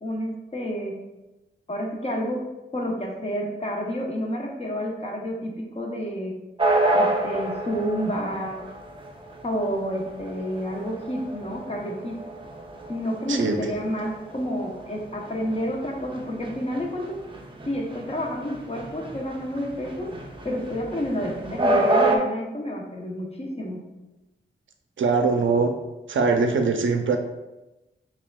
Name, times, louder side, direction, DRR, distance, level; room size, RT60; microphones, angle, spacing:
voice 1, 0.0-1.0 1.7-2.4 2.7-6.3 6.9-8.6 9.4-12.2 12.9-17.2 17.7-20.1 20.4-23.8, equal, 30° left, 0 dB, 0.7 m, -29 dB
sound 1, 6.6-22.2, right 2 dB, 25° right, 0.5 m, -27 dB
voice 2, 13.3-13.8 25.0-25.8 26.1-27.2, right 4 dB, 80° right, 5 dB, 0.5 m, -22 dB
5.9 x 2.4 x 2.2 m, 1.0 s
wide cardioid pair, 90°, 20 cm